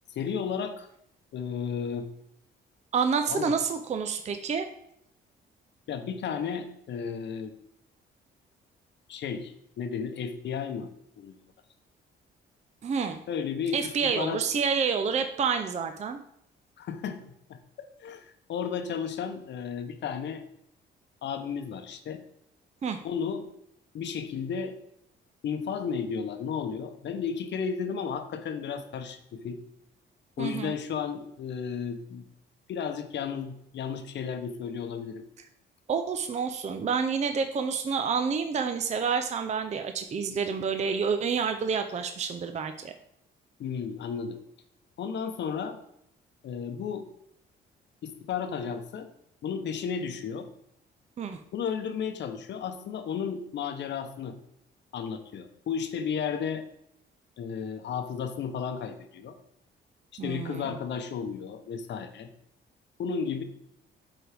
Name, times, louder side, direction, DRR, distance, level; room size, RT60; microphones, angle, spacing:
voice 1, 0.1-0.9 1.3-2.1 3.3-3.6 5.9-7.5 9.1-10.9 11.2-11.4 13.3-14.4 16.8-17.2 17.5-20.4 21.2-22.2 23.0-23.5 23.9-24.7 25.4-29.6 30.4-32.3 32.7-35.2 43.6-44.4 45.0-45.8 46.4-47.1 48.0-49.1 49.4-50.5 51.5-54.4 54.9-56.6 57.4-59.4 60.1-62.3 63.0-63.4, left 6 dB, 65° left, 8 dB, 0.8 m, -33 dB
voice 2, 2.9-4.7 12.8-13.2 13.7-16.2 22.8-23.0 30.4-30.7 35.9-42.9 51.2-51.4 60.2-60.7, right 6 dB, 35° right, 7 dB, 0.5 m, -28 dB
9.0 x 3.9 x 3.4 m, 0.76 s
cardioid pair, 90°, 20 cm